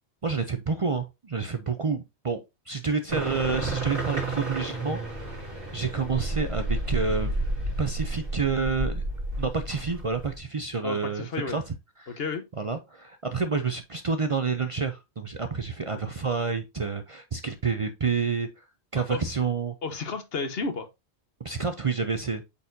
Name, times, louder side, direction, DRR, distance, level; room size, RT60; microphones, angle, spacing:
voice 1, 0.2-2.4 2.7-5.4 5.7-7.4 7.8-9.0 9.4-12.2 12.6-18.7 18.9-19.7 21.4-22.4, right 5 dB, 40° right, 0.5 m, -29 dB
sound 1, 3.1-10.4, right 2 dB, 55° right, 3.2 m, -31 dB
voice 2, 10.8-11.6 12.1-12.5 19.1-19.3 19.8-20.9, left 4 dB, 65° left, 1.2 m, -32 dB
8.3 x 4.3 x 2.7 m
omnidirectional pair, 1.1 m